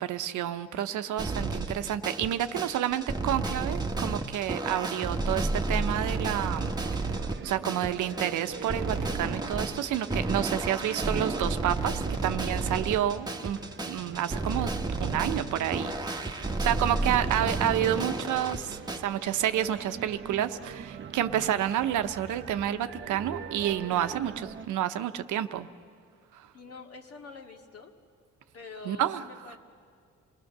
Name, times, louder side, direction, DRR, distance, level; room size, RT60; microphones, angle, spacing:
voice 1, 0.0-6.7 7.0-13.6 13.9-14.7 15.0-25.7 26.3-26.5 28.8-29.2, right 11 dB, 80° right, 10 dB, 0.9 m, -29 dB
sound 1, 1.2-19.0, right 2 dB, 15° right, 1.4 m, -32 dB
sound 2, 6.4-24.7, right 6 dB, 40° right, 0.9 m, -43 dB
voice 2, 26.5-27.9 28.5-29.6, left 4 dB, 55° left, 3 dB, 2.2 m, -46 dB
28.0 x 19.0 x 6.7 m, 2.2 s
cardioid pair, 90°, 30 cm